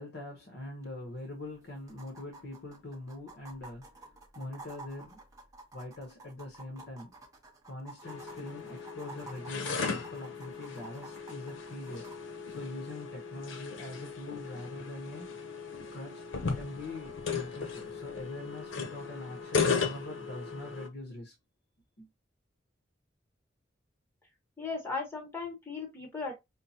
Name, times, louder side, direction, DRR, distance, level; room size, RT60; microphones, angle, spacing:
voice 1, 0.0-5.2 5.7-7.1 7.6-15.3 15.9-16.2 16.5-21.3 22.0-22.1, left 1 dB, 60° left, 0.9 m, -43 dB
sound 1, 0.8-0.9 1.2-1.3 1.9-12.2 13.8-13.9, right 3 dB, 20° right, 0.9 m, -50 dB
sound 2, 8.0-20.9, left 5 dB, 85° left, 0.7 m, -36 dB
voice 2, 24.6-26.3, left 4 dB, 15° left, 1.1 m, -37 dB
5.5 x 2.0 x 2.7 m
head